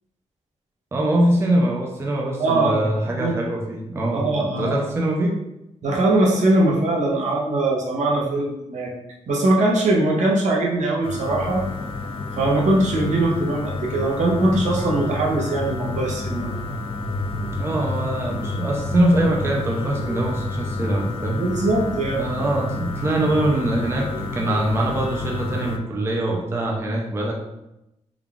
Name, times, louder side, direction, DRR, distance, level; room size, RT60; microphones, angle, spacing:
voice 1, 0.9-4.3 4.6-5.4 8.2-8.4 17.6-21.4 22.2-27.3, right 1 dB, 20° right, -1 dB, 0.4 m, -23 dB
voice 2, 2.4-3.3 4.1-4.7 5.8-8.9 9.3-11.6 12.4-16.6 21.3-22.3, right 2 dB, 70° right, -2 dB, 0.8 m, -21 dB
sound 1, 11.0-25.8, left 3 dB, 45° left, 0.3 m, -30 dB
sound 2, 14.6-26.8, right 5 dB, 55° right, 1.2 m, -37 dB
3.7 x 2.3 x 3.4 m, 0.90 s
wide cardioid pair, 170°, 13 cm